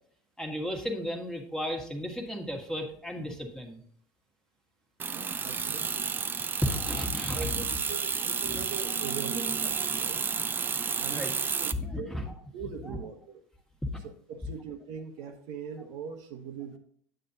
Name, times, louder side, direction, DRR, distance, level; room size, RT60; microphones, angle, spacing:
voice 1, 0.4-3.8 6.6-7.8 8.4-8.6 11.1-11.3 11.8-12.2 12.8-13.0 13.9-14.0, left 1 dB, 5° left, 1 dB, 1.5 m, -34 dB
sound 1, 5.0-11.7, right 5 dB, 25° right, 0.5 m, -31 dB
voice 2, 5.1-6.1 7.3-10.2 11.0-12.2 12.5-13.4 14.0-16.8, right 6 dB, 70° right, 3 dB, 1.1 m, -41 dB
9.2 x 7.6 x 2.7 m, 0.63 s
supercardioid pair, 100°, 8 cm